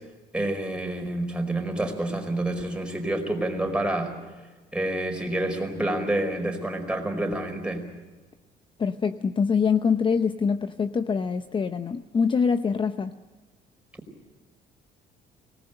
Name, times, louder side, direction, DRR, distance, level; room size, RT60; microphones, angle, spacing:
voice 1, 0.3-4.2 4.7-7.8, right 1 dB, 5° right, 3 dB, 4.8 m, -28 dB
voice 2, 8.8-13.1, left 6 dB, 30° left, 10 dB, 0.8 m, -24 dB
25.0 x 18.5 x 9.0 m, 1.3 s
cardioid pair, 110°, 17 cm